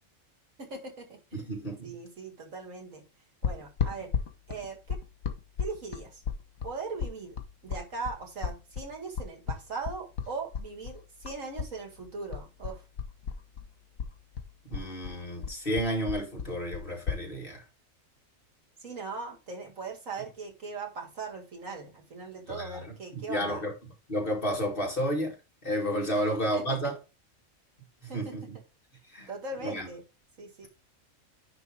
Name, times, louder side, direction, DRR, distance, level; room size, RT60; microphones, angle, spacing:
voice 1, 0.6-1.5 1.8-3.0 3.4-4.1 4.5-5.0 5.6-6.2 6.6-7.4 7.6-12.9 18.8-23.6 26.2-26.3 26.5-26.9 28.1-28.4 29.3-30.0 30.4-30.7, right 4 dB, 70° right, 2.3 m, -39 dB
voice 2, 1.3-1.9 14.7-17.6 22.5-22.8 23.1-23.7 24.1-25.3 25.6-26.9 28.0-28.4 29.1-29.3 29.6-29.9, equal, 40° left, 2.7 m, -31 dB
sound 1, 3.4-11.7 12.0-13.7 14.0-17.2, left 6 dB, 90° left, 1.5 m, -34 dB
10.0 x 3.4 x 4.8 m
omnidirectional pair, 1.4 m